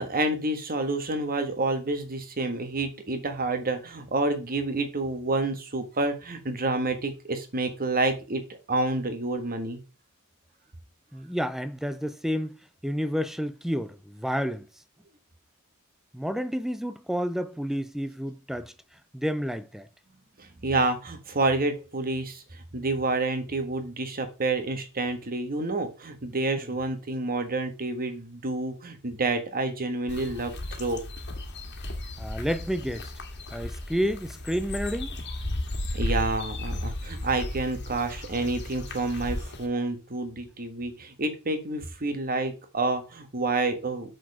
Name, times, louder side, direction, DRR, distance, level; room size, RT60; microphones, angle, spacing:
voice 1, 0.0-9.8 20.4-31.0 35.9-44.1, right 2 dB, 40° right, 1.5 m, -29 dB
voice 2, 11.1-12.6 12.8-14.7 16.1-18.7 19.1-19.9 26.6-26.7 32.2-33.1 33.5-35.2, equal, ahead, 0.4 m, -30 dB
sound 1, 30.1-39.7, left 1 dB, 50° left, 1.7 m, -35 dB
6.8 x 6.3 x 4.9 m
head